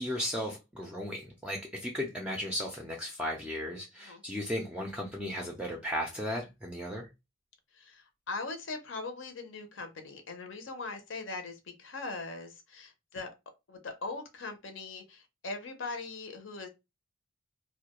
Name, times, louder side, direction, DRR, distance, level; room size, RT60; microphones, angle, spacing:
voice 1, 0.0-7.1, equal, 5° right, 0.4 m, -35 dB
voice 2, 7.7-13.3 13.7-16.7, left 3 dB, 65° left, 0.6 m, -40 dB
2.3 x 2.2 x 2.9 m
head